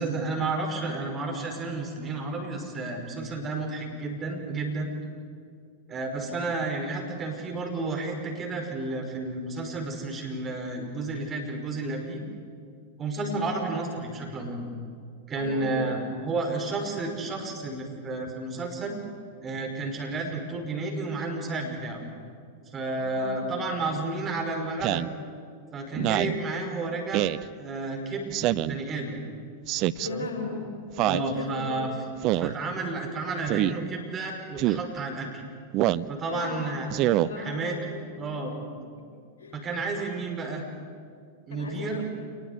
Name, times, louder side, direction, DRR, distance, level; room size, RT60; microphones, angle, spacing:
voice 1, 0.0-4.9 5.9-12.2 13.0-14.7 15.3-19.0 19.4-22.0 22.7-25.0 25.7-27.2 27.6-28.4 28.6-29.2 30.0-30.3 31.0-31.9 32.3-35.4 36.1-36.9 37.4-37.8 38.2-38.5 39.5-40.6 41.5-42.0, right 3 dB, 25° right, 1 dB, 5.5 m, -31 dB
voice 2, 13.1-13.6 15.4-16.0 23.0-23.4 25.9-26.3 30.0-31.8 32.3-32.4 36.2-38.4 39.4-39.6 41.5-42.0, left 4 dB, 65° left, 2 dB, 6.0 m, -37 dB
Speech synthesizer, 24.8-25.1 26.0-26.4 27.1-27.4 28.3-28.8 29.7-30.1 31.0-31.3 32.2-32.5 33.5-33.7 34.6-34.8 35.7-36.1 36.9-37.3, right 15 dB, 40° right, 0.6 m, -25 dB
28.0 x 20.5 x 8.4 m, 2.3 s
figure-of-eight pair, 90°, 0 cm